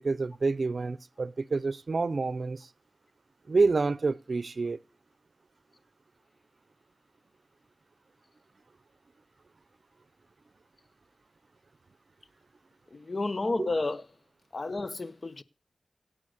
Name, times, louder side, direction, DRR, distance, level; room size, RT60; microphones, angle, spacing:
voice 1, 0.0-2.6 3.5-4.8, right 3 dB, 60° right, 0.8 m, -28 dB
voice 2, 12.9-14.1 14.5-15.4, left 2 dB, 45° left, 1.0 m, -31 dB
17.5 x 7.9 x 6.6 m
wide cardioid pair, 70°, 0 cm